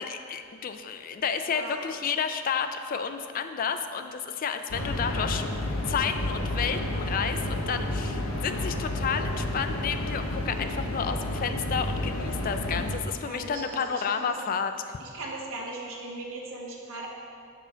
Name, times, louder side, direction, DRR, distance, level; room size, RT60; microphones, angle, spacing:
voice 1, 0.0-5.4 5.9-14.7, left 6 dB, 40° left, 8 dB, 0.3 m, -31 dB
voice 2, 1.5-1.8 4.7-4.8 13.2-14.3 15.0-17.1, right 2 dB, 85° right, -3 dB, 1.4 m, -39 dB
sound 1, 4.7-13.0, left 1 dB, 85° left, 0.8 m, -31 dB
6.8 x 6.3 x 4.4 m, 2.4 s
head